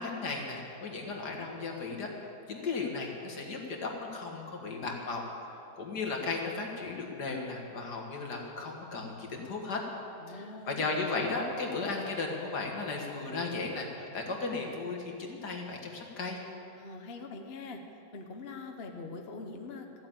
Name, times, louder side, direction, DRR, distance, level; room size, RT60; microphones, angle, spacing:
voice 1, 0.0-2.1 2.5-5.2 5.5-9.8 10.3-16.4, left 3 dB, 70° left, 0 dB, 2.3 m, -35 dB
voice 2, 10.2-10.9 16.8-17.8 18.1-20.1, left 3 dB, 40° left, 3 dB, 1.0 m, -43 dB
15.0 x 7.8 x 9.0 m, 2.7 s
omnidirectional pair, 1.9 m